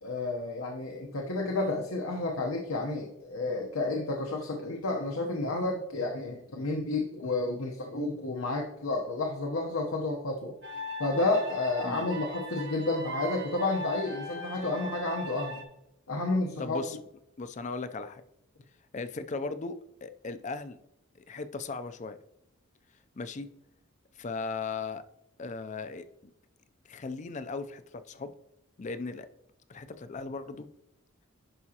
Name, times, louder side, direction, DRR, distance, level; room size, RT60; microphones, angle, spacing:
voice 1, 0.0-10.5 11.0-15.6 16.1-16.8, left 2 dB, 80° left, 1 dB, 0.9 m, -31 dB
sound 1, 10.6-15.6, left 1 dB, 55° right, 1.1 m, -39 dB
voice 2, 16.6-17.0 17.4-18.2 18.9-20.8 21.1-22.2 23.2-23.5 24.2-25.0 25.4-26.1 26.9-28.3 28.8-29.3 29.7-30.7, left 4 dB, 35° left, 11 dB, 0.4 m, -37 dB
11.0 x 4.8 x 2.9 m, 0.82 s
head